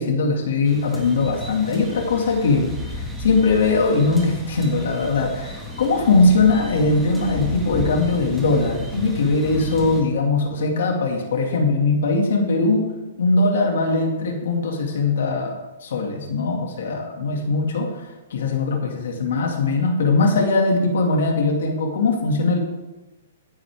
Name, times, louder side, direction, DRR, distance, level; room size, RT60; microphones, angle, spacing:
voice 1, 0.0-12.9 13.2-15.5 15.8-22.6, left 3 dB, 70° left, 2 dB, 2.2 m, -20 dB
sound 1, 0.7-10.0, left 1 dB, 5° right, 1.9 m, -33 dB
14.0 x 9.8 x 3.6 m, 1.1 s
hypercardioid pair, 155°, 0 cm